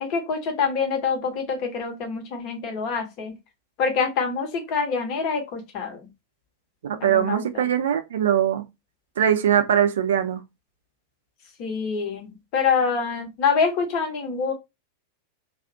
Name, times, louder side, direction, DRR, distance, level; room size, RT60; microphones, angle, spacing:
voice 1, 0.0-3.3 3.8-6.0 7.0-7.7 11.6-14.5, left 5 dB, 40° left, 0.8 m, -26 dB
voice 2, 6.9-8.6 9.2-10.4, right 9 dB, 60° right, 0.4 m, -21 dB
2.4 x 2.0 x 2.5 m
figure-of-eight pair, 90°, 0 cm